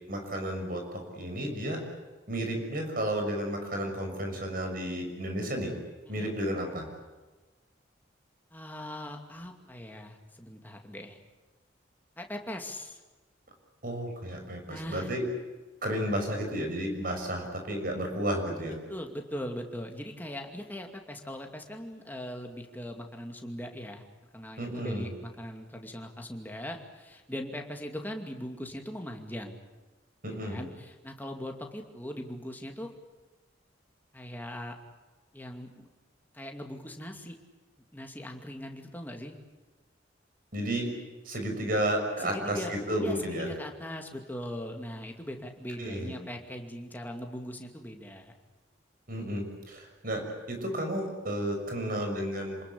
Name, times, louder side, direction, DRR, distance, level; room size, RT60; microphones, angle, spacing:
voice 1, 0.1-1.8 2.3-5.7 6.1-6.9 13.8-15.2 15.8-18.8 24.6-25.1 30.2-30.6 40.5-40.9 41.2-43.5 45.8-46.1 49.1-52.6, right 1 dB, 50° right, 3 dB, 6.4 m, -32 dB
voice 2, 6.0-6.4 8.5-11.2 12.2-13.0 14.7-15.1 18.9-24.0 24.3-29.6 30.4-32.9 34.1-34.7 35.3-35.9 36.3-37.4 37.9-39.3 42.2-48.3, equal, 10° left, 3 dB, 2.4 m, -40 dB
28.0 x 21.0 x 8.5 m, 1.2 s
head